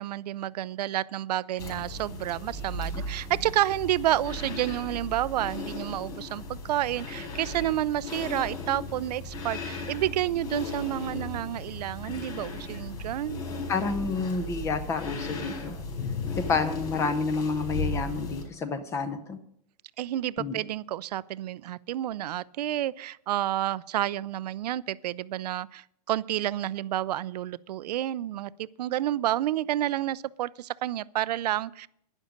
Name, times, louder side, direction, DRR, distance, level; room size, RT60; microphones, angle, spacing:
voice 1, 0.0-13.4 20.0-31.9, right 13 dB, 80° right, 0.5 m, -30 dB
sound 1, 1.6-18.4, left 2 dB, 75° left, 4.7 m, -36 dB
voice 2, 13.7-15.8 16.5-19.4 20.4-20.6, left 4 dB, 15° left, 0.6 m, -29 dB
11.5 x 10.5 x 5.1 m
supercardioid pair, 170°, 21 cm